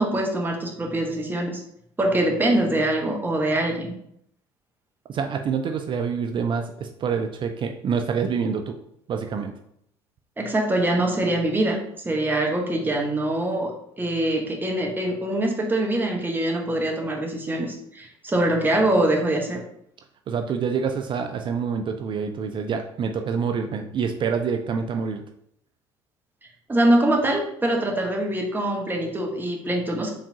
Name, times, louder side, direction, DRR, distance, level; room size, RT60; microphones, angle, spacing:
voice 1, 0.0-1.6 2.0-4.0 10.4-11.8 12.0-19.6 26.7-30.1, right 1 dB, 15° right, 0 dB, 1.0 m, -23 dB
voice 2, 5.1-8.8 9.1-9.5 20.3-25.2, right 6 dB, 35° right, 6 dB, 0.4 m, -26 dB
4.8 x 3.5 x 2.7 m, 0.72 s
figure-of-eight pair, 55°, 14 cm